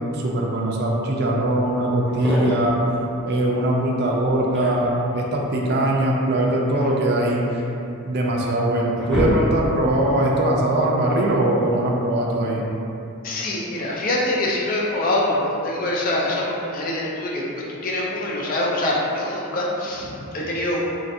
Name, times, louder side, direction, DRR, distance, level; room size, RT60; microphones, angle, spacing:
voice 1, 0.0-2.8 3.3-7.5 8.0-12.6, right 1 dB, 50° right, -2 dB, 0.4 m, -21 dB
sound 1, 2.0-2.8 4.2-5.1 6.3-7.7 8.3-8.4 8.8-9.9, equal, 5° left, 0.8 m, -26 dB
voice 2, 13.2-17.4 17.7-20.8, left 1 dB, 40° left, -4 dB, 0.5 m, -24 dB
3.1 x 2.5 x 2.6 m, 2.8 s
head